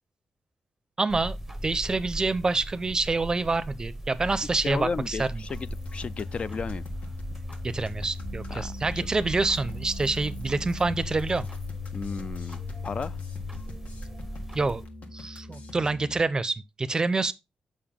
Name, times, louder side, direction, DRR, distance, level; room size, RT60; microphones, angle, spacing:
voice 1, 1.0-1.4 1.6-5.4 7.6-11.5 14.5-14.8 15.1-17.3, right 3 dB, 25° right, 0.6 m, -27 dB
sound 1, 1.1-14.9, right 1 dB, 5° right, 0.9 m, -39 dB
voice 2, 4.6-6.8 8.5-8.7 11.9-13.2, left 4 dB, 45° left, 0.4 m, -34 dB
sound 2, 5.5-16.2, left 4 dB, 60° left, 1.5 m, -39 dB
6.9 x 5.3 x 3.6 m
cardioid pair, 100°, 3 cm